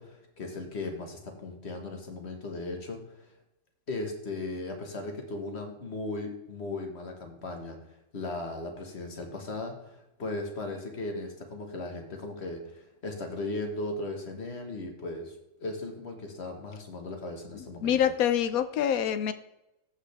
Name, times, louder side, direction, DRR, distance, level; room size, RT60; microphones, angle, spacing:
voice 1, 0.0-3.3 3.9-7.8 8.1-15.3 15.6-18.0, left 2 dB, 50° left, 3 dB, 1.8 m, -37 dB
voice 2, 17.5-19.3, left 9 dB, 80° left, 12 dB, 1.1 m, -26 dB
14.5 x 5.6 x 3.4 m, 0.90 s
omnidirectional pair, 1.5 m